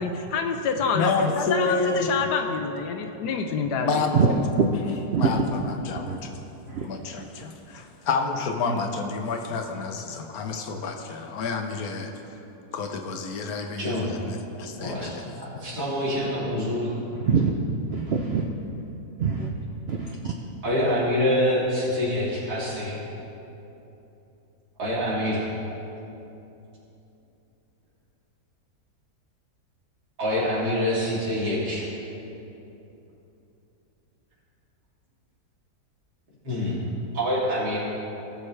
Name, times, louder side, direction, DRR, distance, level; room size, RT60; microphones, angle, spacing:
voice 1, 0.0-4.0, left 5 dB, 85° left, 5 dB, 1.3 m, -27 dB
voice 2, 0.9-2.1 3.8-4.4 5.2-6.3 6.8-12.1 12.7-15.2, left 4 dB, 70° left, 4 dB, 1.3 m, -29 dB
voice 3, 14.8-15.1 15.6-17.0 20.6-23.0 24.8-25.5 30.2-31.9 36.4-36.8 37.1-37.8, equal, 85° right, -8 dB, 3.5 m, -25 dB
voice 4, 17.1-17.5 17.9-18.5 19.2-19.5 19.9-20.3, right 6 dB, 60° right, 2 dB, 0.6 m, -24 dB
18.5 x 6.5 x 3.3 m, 2.9 s
omnidirectional pair, 1.7 m